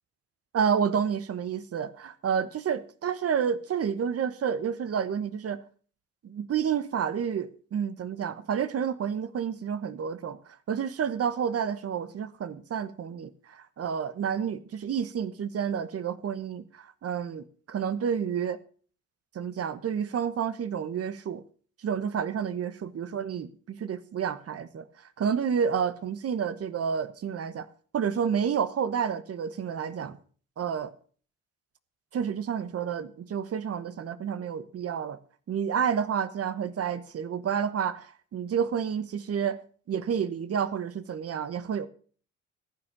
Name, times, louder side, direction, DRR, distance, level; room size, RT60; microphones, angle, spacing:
voice 1, 0.5-5.6 6.2-18.6 19.3-21.4 21.8-24.8 25.2-27.7 27.9-30.2 30.6-30.9 32.1-35.2 35.5-39.6 39.9-41.9, right 7 dB, 50° right, 1.2 m, -30 dB
14.5 x 8.8 x 6.7 m
cardioid pair, 85°, 31 cm